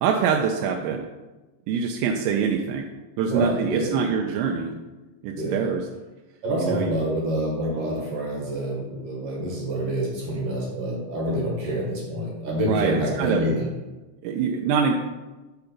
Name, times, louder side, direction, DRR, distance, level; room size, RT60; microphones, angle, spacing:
voice 1, 0.0-1.1 1.7-2.9 3.2-4.7 5.2-5.9 6.6-6.9 9.4-9.5 12.7-13.5 14.2-14.9, right 6 dB, 85° right, 2 dB, 2.8 m, -24 dB
voice 2, 3.2-3.9 5.3-5.7 6.4-13.7, right 1 dB, 50° right, -3 dB, 1.9 m, -27 dB
10.5 x 3.9 x 5.9 m, 1.1 s
omnidirectional pair, 5.2 m